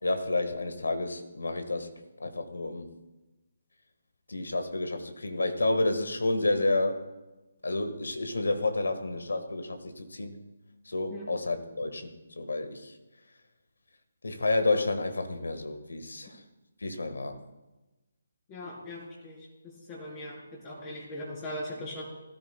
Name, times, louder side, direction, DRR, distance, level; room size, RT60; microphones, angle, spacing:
voice 1, 0.0-1.9 2.2-2.9 4.3-7.1 7.6-10.4 10.8-12.9 14.2-16.4 16.8-17.4, left 2 dB, 75° left, 8 dB, 1.4 m, -30 dB
voice 2, 18.5-22.0, left 1 dB, 25° left, -5 dB, 3.7 m, -40 dB
18.5 x 13.0 x 2.2 m, 1.1 s
figure-of-eight pair, 145°, 0 cm